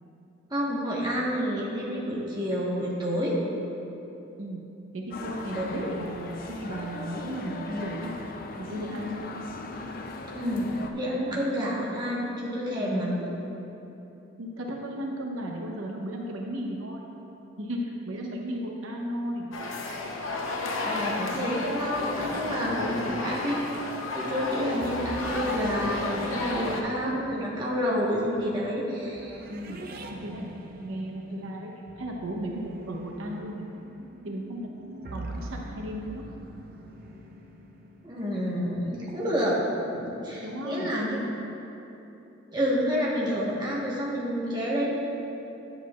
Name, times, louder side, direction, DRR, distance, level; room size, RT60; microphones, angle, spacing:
voice 1, 0.5-3.4 5.5-5.9 10.3-13.3 20.8-23.5 24.1-29.4 31.3-31.5 38.0-39.6 39.8-41.2 42.5-44.9, equal, 20° right, -6 dB, 1.2 m, -29 dB
voice 2, 4.9-8.1 8.6-9.4 11.3-11.4 12.8-13.1 14.4-17.0 17.6-19.5 22.4-23.2 29.5-29.8 30.2-30.4 30.8-31.7 32.0-33.7 34.2-34.7 35.1-36.2 40.2-40.9, equal, 90° right, 0 dB, 0.9 m, -35 dB
sound 1, 5.1-10.9, left 2 dB, 45° left, 0.5 m, -38 dB
sound 2, 19.5-26.8, left 2 dB, 80° left, 0.8 m, -32 dB
sound 3, 21.9-39.4, right 1 dB, 45° right, 0.5 m, -44 dB
10.5 x 7.7 x 2.4 m, 3.0 s
head